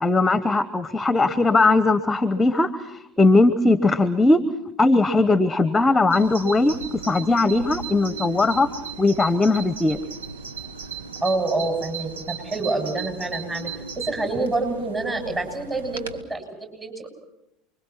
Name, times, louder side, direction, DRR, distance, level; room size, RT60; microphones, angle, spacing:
voice 1, 0.0-4.4 4.8-6.8 7.1-8.7 9.0-10.0, left 2 dB, 15° left, 14 dB, 1.1 m, -19 dB
Bird vocalization bird call bird song, 6.1-16.2, right 6 dB, 80° right, 1.5 m, -36 dB
voice 2, 11.2-13.7 14.0-17.1, right 2 dB, 20° right, 5 dB, 7.2 m, -27 dB
29.5 x 23.0 x 5.9 m, 0.85 s
hypercardioid pair, 80°, 0 cm